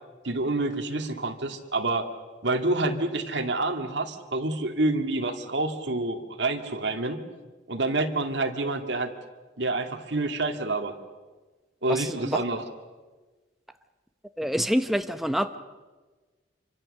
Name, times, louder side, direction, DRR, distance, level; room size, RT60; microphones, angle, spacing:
voice 1, 0.2-2.1 2.4-7.2 7.7-9.1 9.6-10.9 11.8-12.6, right 2 dB, 70° right, 4 dB, 2.2 m, -28 dB
voice 2, 11.9-12.4 14.4-15.6, equal, ahead, 8 dB, 0.8 m, -27 dB
27.0 x 24.5 x 6.6 m, 1.3 s
head